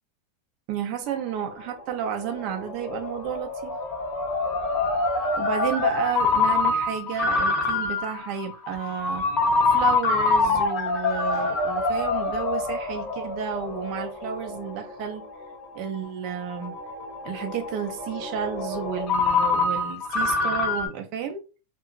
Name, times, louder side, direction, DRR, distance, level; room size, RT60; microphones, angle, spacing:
voice 1, 0.7-3.8 5.4-9.3 9.6-15.3 15.7-16.8 17.2-21.5, right 8 dB, 35° right, 0.5 m, -32 dB
Ringtone, 1.1-20.9, left 3 dB, 25° left, 0.8 m, -26 dB
2.9 x 2.3 x 2.4 m
supercardioid pair, 170°, 0 cm